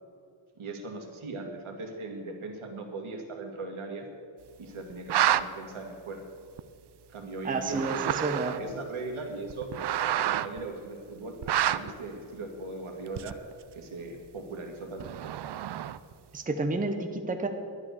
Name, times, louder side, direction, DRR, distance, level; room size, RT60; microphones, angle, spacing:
voice 1, 0.5-4.1 4.6-6.2 7.1-9.7 10.3-13.4 13.7-15.0, right 3 dB, 80° right, 3 dB, 2.2 m, -39 dB
sound 1, 4.9-5.4 6.6-6.7 7.6-8.7 9.5-10.6 11.4-11.9 13.2-13.5 15.0-16.1, right 11 dB, 55° right, 0.5 m, -28 dB
voice 2, 7.4-8.6 16.3-17.5, right 3 dB, 15° right, 5 dB, 0.8 m, -30 dB
11.5 x 11.0 x 6.7 m, 2.5 s
wide cardioid pair, 165°, 49 cm